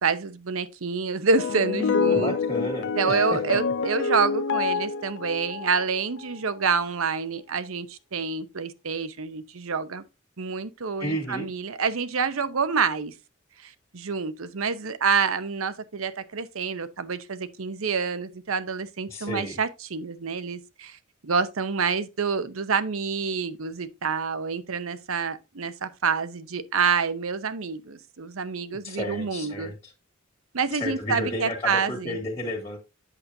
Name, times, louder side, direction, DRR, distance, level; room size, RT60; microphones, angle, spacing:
voice 1, 0.0-2.3 3.0-10.0 10.4-13.1 13.6-29.7 30.5-32.2, right 5 dB, 85° right, 0.8 m, -27 dB
sound 1, 1.4-6.4, left 5 dB, 60° left, 0.4 m, -27 dB
voice 2, 2.1-3.4 11.0-11.5 19.1-19.6 28.8-29.9 30.7-32.8, left 1 dB, 25° left, 1.9 m, -32 dB
8.4 x 6.7 x 2.7 m
head